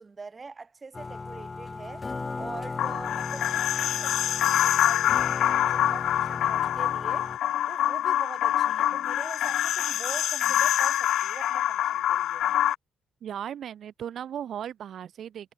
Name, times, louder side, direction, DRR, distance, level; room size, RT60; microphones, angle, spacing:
voice 1, 0.0-2.1 2.4-7.4 7.7-12.5, right 4 dB, 30° right, 6.8 m, -43 dB
sound 1, 0.9-7.4, left 4 dB, 30° left, 4.3 m, -36 dB
sound 2, 2.8-12.7, left 12 dB, 75° left, 0.7 m, -25 dB
voice 2, 13.2-15.5, right 9 dB, 65° right, 4.8 m, -36 dB
cardioid pair, 90°, 0 cm